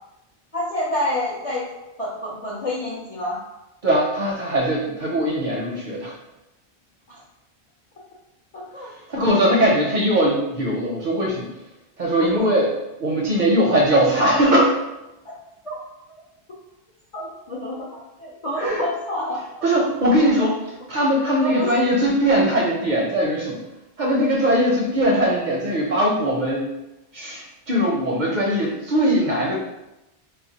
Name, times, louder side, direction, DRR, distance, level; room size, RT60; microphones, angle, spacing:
voice 1, 0.5-1.7 2.0-3.4 7.1-7.2 8.5-8.9 9.1-9.2 9.6-9.9 12.2-12.5 15.6-15.8 17.1-19.4 21.3-21.9, left 1 dB, 50° left, -6 dB, 0.4 m, -28 dB
voice 2, 3.8-6.1 9.1-11.5 12.0-12.7 13.0-14.8 18.6-18.8 19.6-20.6 20.9-23.6 24.0-26.7 27.1-29.5, equal, 55° right, -3 dB, 0.6 m, -20 dB
2.4 x 2.0 x 3.9 m, 0.94 s
omnidirectional pair, 1.1 m